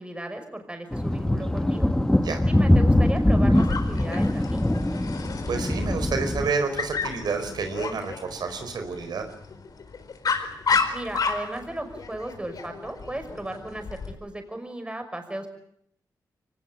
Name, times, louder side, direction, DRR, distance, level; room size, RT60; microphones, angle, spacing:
voice 1, 0.0-1.9 2.5-4.7 10.9-15.5, right 1 dB, 15° right, 6 dB, 5.9 m, -35 dB
sound 1, 0.9-6.5, left 1 dB, 10° left, 1.3 m, -22 dB
Dog, 3.5-14.1, left 5 dB, 60° left, 4.5 m, -32 dB
voice 2, 5.5-9.2, right 5 dB, 75° right, 6 dB, 4.7 m, -29 dB
24.0 x 19.5 x 9.4 m, 0.71 s
cardioid pair, 80°, 7 cm